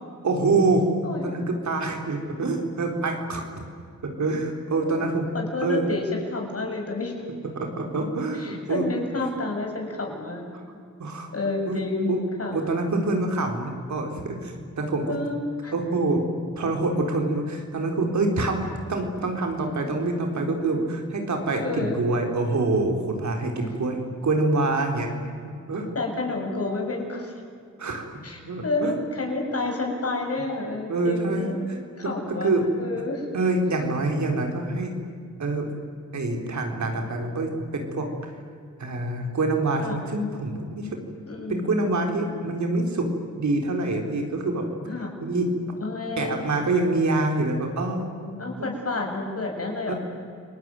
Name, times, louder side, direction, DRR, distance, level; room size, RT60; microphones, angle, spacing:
voice 1, 0.2-0.9 1.2-3.4 4.0-5.3 5.6-5.9 7.5-8.8 10.7-11.3 11.7-11.8 12.1-12.2 12.5-15.1 15.7-16.2 16.6-18.6 18.9-25.1 25.7-25.9 27.8-28.0 28.4-28.9 30.9-31.8 32.4-32.7 33.3-34.9 35.4-35.7 36.1-38.1 38.8-40.9 41.5-43.1 43.3-44.7 45.2-45.5 46.2-48.7 49.9-50.0, right 2 dB, 70° right, 3 dB, 4.4 m, -26 dB
voice 2, 1.0-1.4 4.7-5.0 5.3-7.2 8.3-10.5 11.3-12.6 15.1-15.7 21.6-22.0 25.9-27.3 28.2-31.6 32.0-32.5 32.8-33.3 39.8-40.0 41.3-41.7 44.9-45.1 45.8-46.5 48.4-50.0, left 3 dB, 55° left, 2 dB, 7.1 m, -30 dB
29.0 x 19.5 x 9.3 m, 2.3 s
cardioid pair, 55°, 29 cm